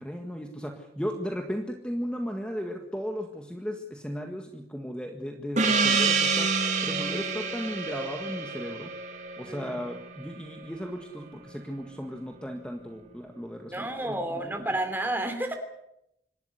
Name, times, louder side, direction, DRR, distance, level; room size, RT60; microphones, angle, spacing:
voice 1, 0.0-8.9 9.4-14.7, equal, 5° left, 3 dB, 1.8 m, -36 dB
Gong, 5.6-10.6, right 4 dB, 40° right, 2.3 m, -28 dB
voice 2, 9.5-9.8 13.7-15.6, right 1 dB, 10° right, 5 dB, 3.1 m, -31 dB
26.5 x 12.5 x 9.8 m, 0.81 s
head